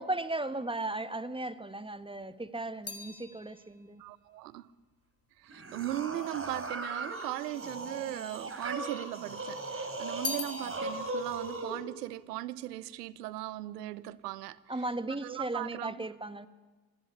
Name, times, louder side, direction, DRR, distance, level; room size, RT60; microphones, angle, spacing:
voice 1, 0.0-4.0 14.7-16.5, right 2 dB, 10° right, 1.7 m, -36 dB
sound 1, 1.9-6.3 7.1-7.9 8.2-9.3 9.6-13.2 13.5-14.0, left 3 dB, 30° left, 3.5 m, -44 dB
voice 2, 4.0-4.7 5.4-16.1, right 14 dB, 90° right, 0.9 m, -38 dB
sound 2, 5.5-11.8, right 2 dB, 25° right, 5.4 m, -38 dB
25.5 x 19.0 x 10.0 m
hypercardioid pair, 55°, 47 cm